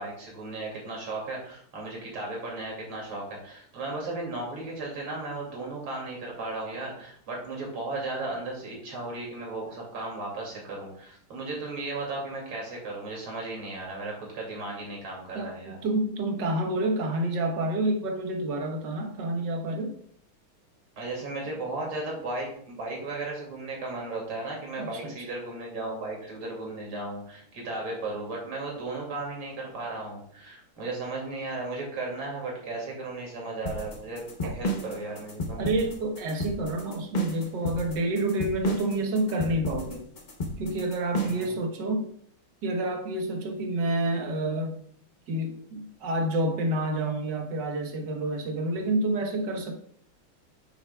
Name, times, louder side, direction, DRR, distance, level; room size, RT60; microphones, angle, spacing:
voice 1, 0.0-15.8 21.0-34.3 34.5-35.6 41.2-41.5, right 2 dB, 80° right, -2 dB, 3.4 m, -35 dB
voice 2, 15.3-20.0 24.8-25.3 34.4-34.6 35.5-40.0 40.6-42.1 42.6-44.8 45.3-49.7, right 1 dB, 60° right, 3 dB, 1.7 m, -29 dB
sound 1, 33.7-41.5, equal, 75° left, 0.4 m, -32 dB
10.0 x 6.6 x 2.3 m, 0.64 s
omnidirectional pair, 2.4 m